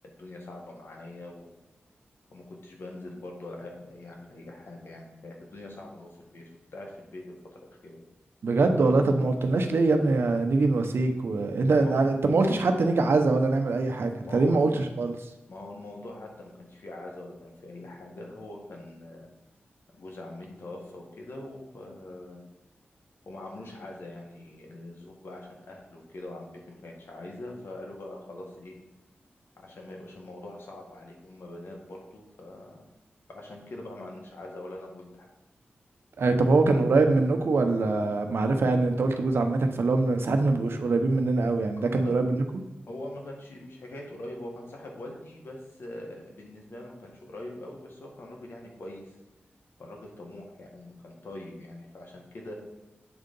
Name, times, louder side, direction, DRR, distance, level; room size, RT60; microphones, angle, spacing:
voice 1, 0.0-1.5 2.3-7.3 7.8-8.0 11.7-12.1 14.2-14.8 15.5-19.3 19.9-22.4 23.2-28.8 29.6-32.8 33.3-35.3 41.8-42.2 42.9-49.1 49.8-52.5, left 1 dB, 75° left, 0 dB, 1.7 m, -43 dB
voice 2, 8.4-15.1 36.2-42.4, right 3 dB, 75° right, 6 dB, 0.9 m, -23 dB
8.0 x 3.9 x 5.3 m, 1.0 s
cardioid pair, 60°, 4 cm